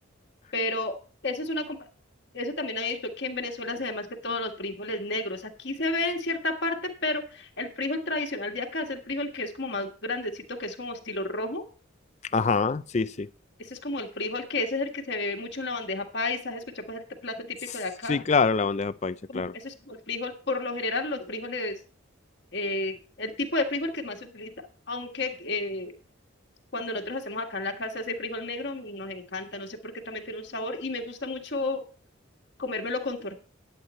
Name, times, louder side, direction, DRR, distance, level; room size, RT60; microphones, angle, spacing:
voice 1, 0.5-0.9 1.2-1.9 2.3-11.6 13.6-18.2 19.3-21.8 22.5-24.5 24.9-25.9 26.7-31.8 32.6-33.4, left 2 dB, 55° left, 1.6 m, -32 dB
voice 2, 12.3-13.3 18.1-19.5, left 4 dB, 35° left, 0.4 m, -25 dB
10.5 x 8.2 x 4.3 m
head